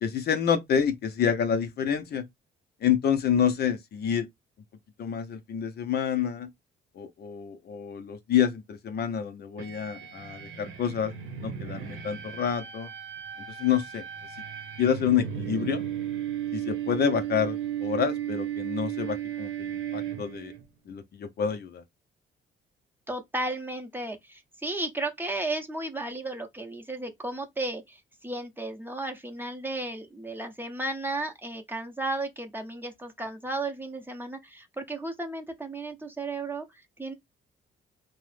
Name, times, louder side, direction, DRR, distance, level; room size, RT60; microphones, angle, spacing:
voice 1, 0.0-2.2 2.8-4.3 5.0-6.5 7.0-11.1 11.4-12.9 13.6-14.0 14.8-15.8 16.5-20.5 20.9-21.8, left 8 dB, 55° left, 0.5 m, -28 dB
sound 1, 9.6-20.6, right 10 dB, 80° right, 0.9 m, -35 dB
voice 2, 23.1-36.6 37.0-37.1, right 2 dB, 10° right, 0.7 m, -34 dB
2.8 x 2.0 x 3.2 m
cardioid pair, 90°, 20 cm